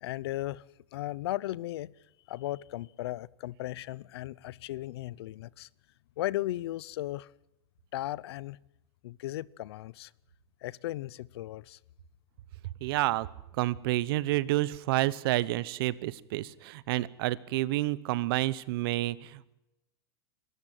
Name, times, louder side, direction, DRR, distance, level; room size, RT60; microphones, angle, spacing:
voice 1, 0.0-0.6 0.9-1.9 2.3-5.7 6.2-7.3 7.9-8.6 9.0-10.1 10.6-11.8, left 15 dB, 75° left, 0.6 m, -36 dB
voice 2, 12.8-13.3 13.5-19.5, right 17 dB, 65° right, 1.0 m, -29 dB
23.5 x 13.5 x 9.0 m
supercardioid pair, 145°, 13 cm